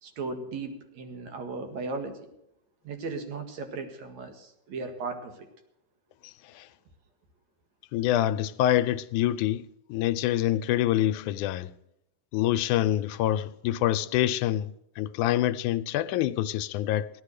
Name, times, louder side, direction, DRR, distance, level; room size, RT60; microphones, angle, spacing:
voice 1, 0.0-2.3 2.8-5.5, right 3 dB, 70° right, 3.0 m, -36 dB
voice 2, 7.9-11.7 12.3-17.1, left 13 dB, 90° left, 2.2 m, -26 dB
16.5 x 12.0 x 6.6 m
omnidirectional pair, 3.4 m